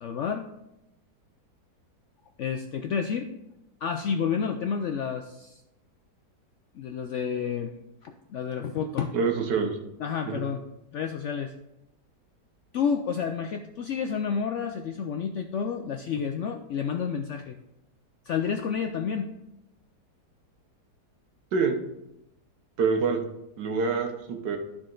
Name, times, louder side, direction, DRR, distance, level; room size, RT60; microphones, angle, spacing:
voice 1, 0.0-0.5 2.4-3.3 3.8-5.6 6.7-7.7 8.0-9.1 10.0-10.6 10.9-11.5 12.7-17.6 18.2-19.3, left 6 dB, 75° left, 5 dB, 0.6 m, -30 dB
voice 2, 9.1-9.8 10.3-10.4 21.5-21.8 22.8-23.2 23.6-24.6, right 5 dB, 90° right, 4 dB, 1.6 m, -26 dB
12.5 x 4.3 x 3.8 m, 0.87 s
omnidirectional pair, 1.8 m